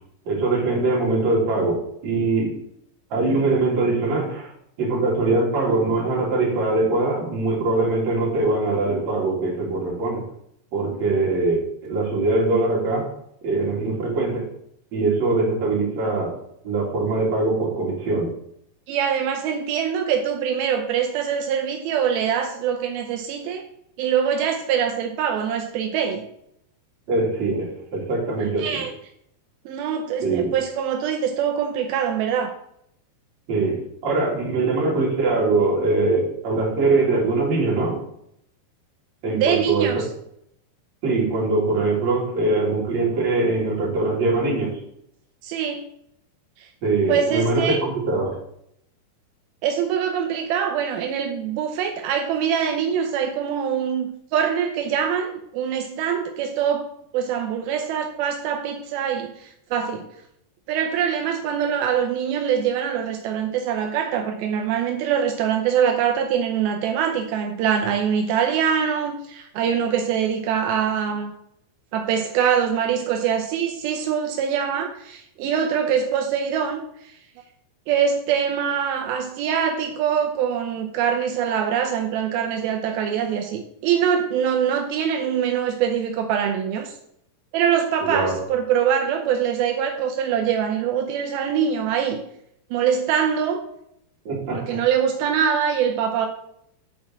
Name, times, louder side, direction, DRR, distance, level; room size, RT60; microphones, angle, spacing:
voice 1, 0.3-2.5 3.1-4.5 4.8-10.2 10.7-13.1 13.4-14.5 14.9-16.3 16.6-18.3 27.1-28.8 30.2-30.5 33.5-38.0 39.2-39.9 41.0-44.8 46.8-48.4 88.0-88.4 94.3-94.8, right 3 dB, 40° right, -4 dB, 3.6 m, -22 dB
voice 2, 18.9-23.6 24.0-26.3 28.4-28.9 29.7-32.5 39.3-40.1 45.4-45.8 46.6-46.7 47.1-47.8 49.6-56.8 57.1-60.1 60.7-71.3 71.9-77.1 77.9-86.9 87.5-92.2 92.7-93.6 94.5-96.3, right 8 dB, 80° right, 4 dB, 2.2 m, -23 dB
7.5 x 5.0 x 7.2 m, 0.73 s
omnidirectional pair, 5.1 m